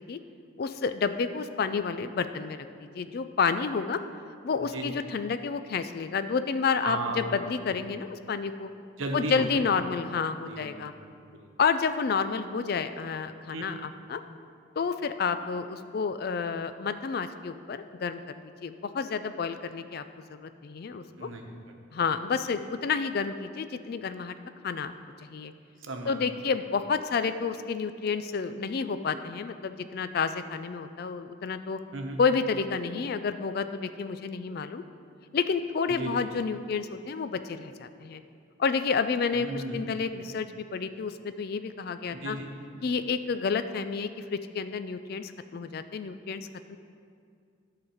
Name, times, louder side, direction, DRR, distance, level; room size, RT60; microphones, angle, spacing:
voice 1, 0.6-2.7 2.9-4.0 4.4-8.7 9.1-10.9 11.6-14.2 14.8-20.0 20.3-21.3 21.9-24.3 24.6-24.9 25.3-25.5 26.1-31.8 32.2-34.8 35.3-38.2 38.6-42.4 42.8-46.8, left 5 dB, 50° left, 11 dB, 0.3 m, -30 dB
voice 2, 6.8-7.3 9.0-9.5 10.5-11.5 13.5-13.6 21.2-21.4 25.8-26.2 31.9-32.2 35.9-36.1 39.3-39.8 42.1-42.5, right 2 dB, 80° right, 2 dB, 1.0 m, -35 dB
11.0 x 3.9 x 7.0 m, 2.3 s
head